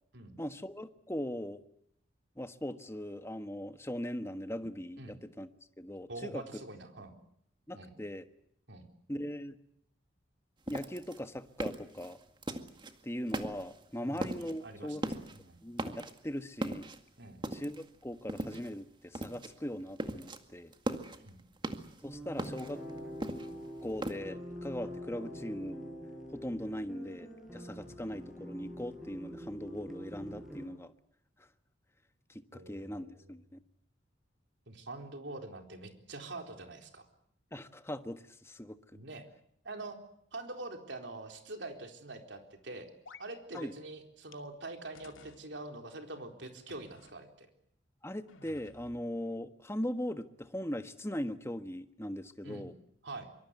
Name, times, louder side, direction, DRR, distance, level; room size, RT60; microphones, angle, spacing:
voice 1, 0.4-1.6 2.4-5.5 5.8-6.6 7.7-8.2 9.1-9.6 10.7-12.2 13.0-15.0 15.6-16.9 17.5-20.7 22.0-22.8 23.8-25.8 26.3-30.9 31.4-31.5 32.3-33.6 37.5-38.8 43.5-43.7 48.0-52.7, equal, 15° left, 9 dB, 1.4 m, -40 dB
voice 2, 6.1-7.1 7.7-7.9 8.7-8.8 14.0-15.6 17.2-17.4 21.2-21.4 27.9-28.0 32.5-33.1 34.7-37.1 38.9-39.3 39.6-40.0 40.3-42.9 43.2-47.5 52.4-52.6 53.0-53.3, right 2 dB, 60° right, 4 dB, 4.1 m, -45 dB
sound 1, 10.7-12.9 13.3-13.8 14.2-14.6 14.9-15.4 15.7-16.3 16.6-17.9 18.3-18.8 19.1-19.5 19.8-20.4 20.7-22.0 22.4-24.1, right 1 dB, 25° right, 2.0 m, -38 dB
sound 2, 22.0-30.7, equal, ahead, 6.8 m, -45 dB
sound 3, 43.1-43.3 43.6-43.7 44.3-44.4 45.0-45.4 46.7-47.2 48.3-49.0, left 5 dB, 90° left, 2.4 m, -54 dB
25.0 x 24.5 x 8.2 m, 0.71 s
head